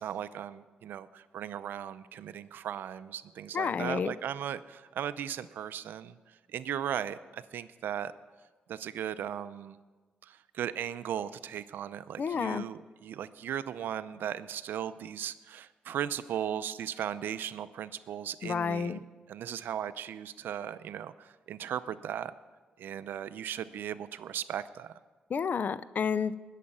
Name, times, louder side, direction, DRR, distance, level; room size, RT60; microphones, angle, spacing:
voice 1, 0.0-6.1 6.5-8.1 8.7-9.8 10.2-22.3 22.8-24.9, right 9 dB, 75° right, 14 dB, 0.5 m, -37 dB
voice 2, 3.5-4.1 12.2-12.6 18.4-19.0 25.3-26.3, left 6 dB, 55° left, 16 dB, 0.5 m, -30 dB
20.0 x 7.5 x 5.5 m, 1.3 s
supercardioid pair, 55°, 3 cm